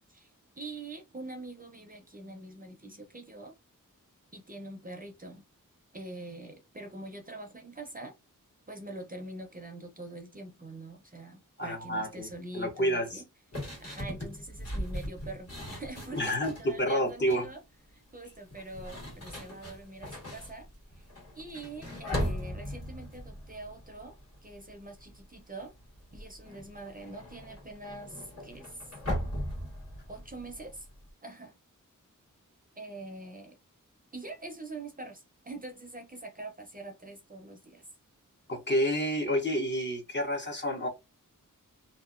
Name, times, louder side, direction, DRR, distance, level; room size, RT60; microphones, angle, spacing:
voice 1, 0.1-3.6 4.3-5.4 5.9-8.2 8.7-13.2 13.6-17.6 17.9-20.7 21.3-24.1 24.4-25.7 26.1-28.9 30.1-30.9 31.2-31.5 32.8-33.6 34.1-37.9, right 2 dB, 25° right, 0.6 m, -44 dB
voice 2, 11.6-12.3 12.5-13.2 16.1-16.5 16.8-17.5 38.5-40.9, equal, 35° left, 0.8 m, -29 dB
sound 1, 13.5-16.7 17.1-17.5 18.4-24.7 25.0-25.3 25.6-31.1, equal, 50° left, 1.6 m, -39 dB
2.7 x 2.3 x 2.4 m
wide cardioid pair, 85°, 33 cm